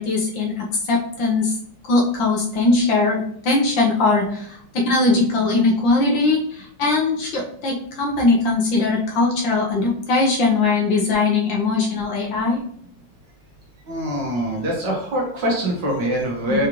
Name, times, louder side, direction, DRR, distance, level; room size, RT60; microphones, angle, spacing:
voice 1, 0.0-1.5 1.9-12.6 16.5-16.6, left 3 dB, 65° left, -2 dB, 1.5 m, -20 dB
voice 2, 13.9-16.7, right 1 dB, 60° right, -2 dB, 1.6 m, -23 dB
4.8 x 3.2 x 2.9 m, 0.64 s
omnidirectional pair, 2.4 m